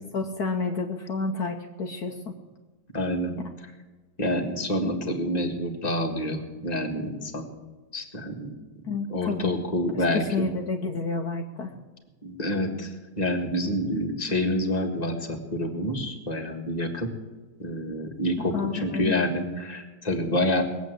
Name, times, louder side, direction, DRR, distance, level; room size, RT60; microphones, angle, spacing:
voice 1, 0.1-2.4 8.9-9.5 9.9-11.7 18.5-19.2, left 4 dB, 65° left, 3 dB, 1.4 m, -30 dB
voice 2, 2.9-3.4 4.2-7.5 7.9-8.5 9.1-10.5 12.2-17.1 17.6-20.6, left 1 dB, 25° left, 1 dB, 1.8 m, -28 dB
20.0 x 8.1 x 8.0 m, 1.3 s
omnidirectional pair, 1.9 m